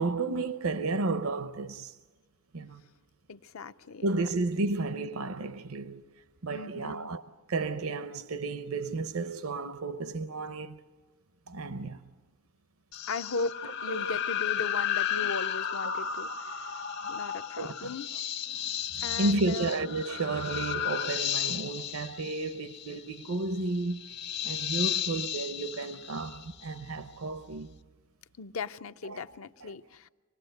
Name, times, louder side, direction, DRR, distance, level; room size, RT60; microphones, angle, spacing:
voice 1, 0.0-2.0 2.5-2.8 4.0-6.0 6.4-7.2 7.5-10.8 11.5-12.0 13.9-14.2 14.6-14.7 15.1-15.3 16.1-16.3 17.6-17.9 18.5-18.6 18.9-24.0 24.4-27.7 29.0-29.2 29.6-29.7, right 3 dB, 85° right, 0.8 m, -32 dB
voice 2, 3.3-4.1 4.6-4.7 6.5-7.1 13.1-16.7 17.1-18.1 19.0-19.7 28.4-30.1, left 4 dB, 70° left, 0.6 m, -37 dB
sound 1, 12.9-26.8, left 9 dB, 50° left, 0.9 m, -34 dB
26.5 x 19.0 x 7.8 m
head